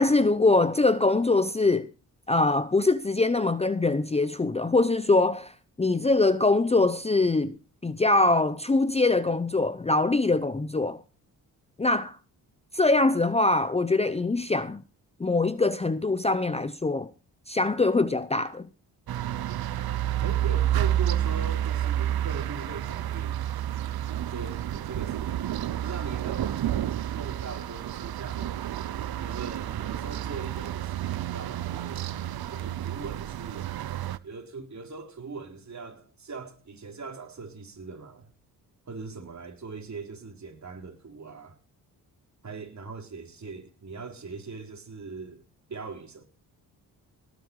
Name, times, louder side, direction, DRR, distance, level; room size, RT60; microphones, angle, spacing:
voice 1, 0.0-1.9 2.3-7.6 7.8-11.0 11.8-12.2 12.7-14.8 15.2-17.1 17.5-18.7, left 2 dB, 15° left, 0.7 m, -23 dB
sound 1, 19.1-34.2, right 12 dB, 70° right, 0.9 m, -30 dB
voice 2, 20.2-23.4 24.2-25.4 25.7-26.7 27.1-28.6 29.2-32.0 32.5-33.7 34.2-38.3 38.9-41.6 42.4-45.4 45.7-46.2, right 4 dB, 45° right, 4.0 m, -40 dB
18.5 x 8.2 x 4.7 m
cardioid pair, 85°, 39 cm